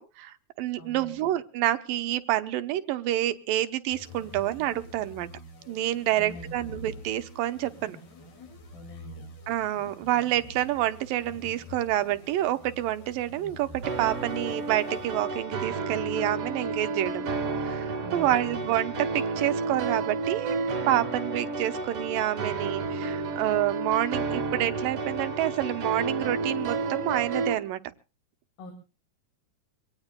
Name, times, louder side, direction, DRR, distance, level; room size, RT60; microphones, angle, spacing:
voice 1, 0.0-5.3 5.7-8.0 9.5-20.6 20.9-27.8, right 14 dB, 85° right, 10 dB, 2.6 m, -28 dB
voice 2, 0.8-1.2 6.1-6.7 8.7-9.3 18.0-18.7 28.6-28.7, left 1 dB, 85° left, 5 dB, 4.1 m, -44 dB
sound 1, 3.9-15.7, left 1 dB, 50° left, 3.4 m, -46 dB
sound 2, 13.8-27.5, right 3 dB, 45° right, 2.4 m, -31 dB
25.0 x 18.0 x 2.2 m, 0.33 s
omnidirectional pair, 3.9 m